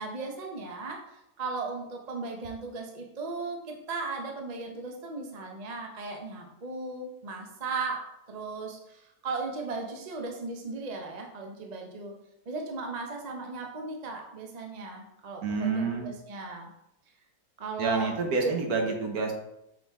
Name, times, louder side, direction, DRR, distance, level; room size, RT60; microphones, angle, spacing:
voice 1, 0.0-12.1 12.5-16.7 17.6-18.1 18.4-18.5, right 3 dB, 35° right, 1 dB, 0.6 m, -37 dB
voice 2, 15.4-16.1 17.8-19.3, right 4 dB, 60° right, 2 dB, 1.4 m, -28 dB
6.4 x 4.4 x 3.5 m, 0.83 s
omnidirectional pair, 1.9 m